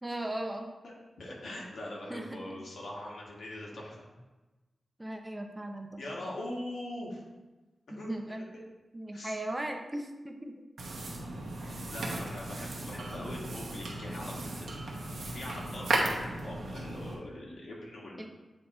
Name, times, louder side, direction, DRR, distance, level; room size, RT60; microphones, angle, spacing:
voice 1, 0.0-0.7 2.1-2.6 5.0-6.0 7.9-8.4 8.9-10.6 12.0-12.1 18.2-18.3, right 1 dB, 15° right, 4 dB, 0.5 m, -38 dB
voice 2, 1.2-4.0 6.0-7.2 7.9-8.4 9.1-9.4 11.6-14.9 15.3-18.3, left 1 dB, 70° left, -3 dB, 1.5 m, -42 dB
sound 1, 10.8-17.1, right 2 dB, 80° right, 1.1 m, -35 dB
8.5 x 2.8 x 4.2 m, 1.1 s
wide cardioid pair, 110°, 0 cm